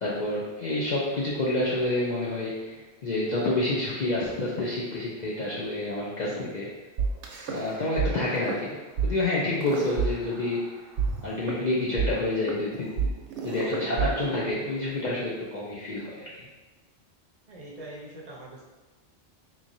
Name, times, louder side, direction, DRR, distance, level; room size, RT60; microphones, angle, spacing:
voice 1, 0.0-6.7 7.5-8.8 9.0-10.6 11.2-13.1 13.4-16.3, left 2 dB, 55° left, -6 dB, 0.5 m, -28 dB
sound 1, 7.0-8.1 8.4-8.6 9.0-9.1 9.6-10.6 11.0-15.0, right 6 dB, 85° right, 0.9 m, -30 dB
voice 2, 17.5-18.6, right 1 dB, 40° right, -3 dB, 0.6 m, -43 dB
3.7 x 3.0 x 2.6 m, 1.3 s
omnidirectional pair, 1.1 m